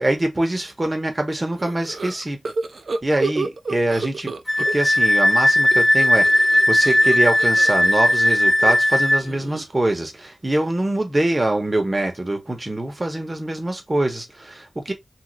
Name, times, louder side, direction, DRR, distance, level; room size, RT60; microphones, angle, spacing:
voice 1, 0.0-2.4 3.0-4.3 4.6-14.9, right 1 dB, 25° right, 1.0 m, -24 dB
sound 1, 1.6-5.1 5.4-9.8, right 3 dB, 60° right, 0.5 m, -31 dB
Wind instrument woodwind instrument, 4.5-9.2, left 1 dB, 15° left, 0.5 m, -17 dB
3.3 x 2.6 x 3.0 m
wide cardioid pair, 100°, 0 cm